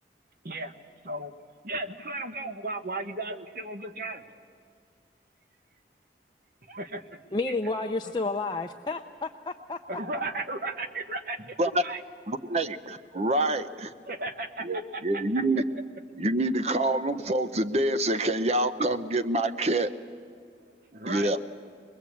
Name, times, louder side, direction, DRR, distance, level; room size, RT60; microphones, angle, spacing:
voice 1, 1.6-4.2 6.7-7.2 7.5-7.6 9.9-12.0 14.1-15.2 20.9-21.3, right 2 dB, 50° right, 8 dB, 1.2 m, -35 dB
voice 2, 7.3-9.8, left 3 dB, 25° left, 3 dB, 0.5 m, -31 dB
voice 3, 12.3-13.9 14.6-15.6 16.2-19.9 21.1-21.4, right 1 dB, 35° right, 11 dB, 0.7 m, -26 dB
22.0 x 21.5 x 8.5 m, 2.1 s
head